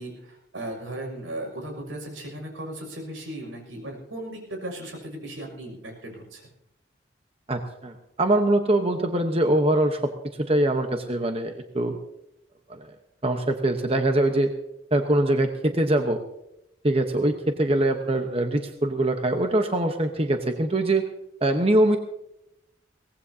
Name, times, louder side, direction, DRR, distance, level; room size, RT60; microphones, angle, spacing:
voice 1, 0.0-6.5, right 1 dB, 90° right, 2 dB, 6.4 m, -37 dB
voice 2, 7.5-12.0 12.7-12.9 13.2-14.5 14.9-16.2 16.8-21.1 21.4-22.0, right 1 dB, 30° right, 5 dB, 1.0 m, -23 dB
23.0 x 18.5 x 2.8 m, 0.84 s
head